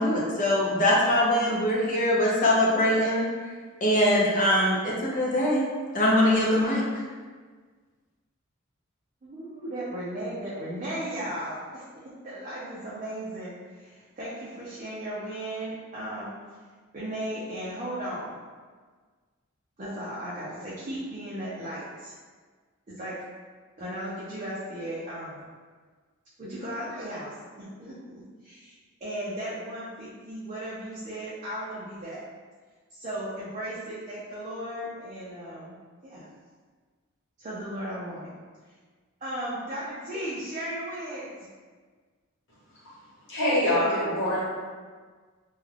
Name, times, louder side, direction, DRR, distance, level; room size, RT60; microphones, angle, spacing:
voice 1, 0.0-3.3 3.8-5.7 5.9-6.8, left 1 dB, 40° left, -4 dB, 0.6 m, -22 dB
voice 2, 9.2-16.3 16.9-18.4 19.8-22.1 22.9-23.2 23.8-25.5 26.4-28.0 28.4-28.8 29.0-32.2 32.9-35.7 36.0-36.3 37.4-38.3 39.2-41.3, right 1 dB, 35° right, -9 dB, 0.5 m, -36 dB
voice 3, 43.3-44.4, left 1 dB, 60° left, -8 dB, 1.1 m, -24 dB
2.3 x 2.3 x 3.3 m, 1.5 s
head